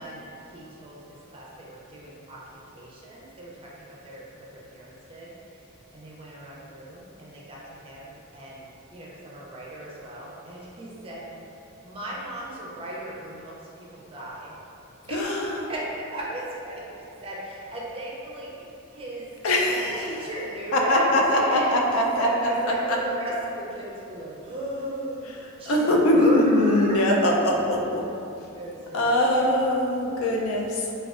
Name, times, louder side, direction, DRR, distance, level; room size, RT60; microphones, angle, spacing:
voice 1, 0.0-2.4 2.7-14.5 15.1-19.3 19.6-27.1 28.5-29.5 30.3-30.4, right 1 dB, 25° right, -5 dB, 0.4 m, -36 dB
voice 2, 15.1-15.6 19.4-20.1 20.7-22.5 22.9-23.0 25.7-28.1 28.4-28.5 28.9-30.9, left 1 dB, 80° left, 0 dB, 0.5 m, -22 dB
4.3 x 2.3 x 2.4 m, 2.8 s
head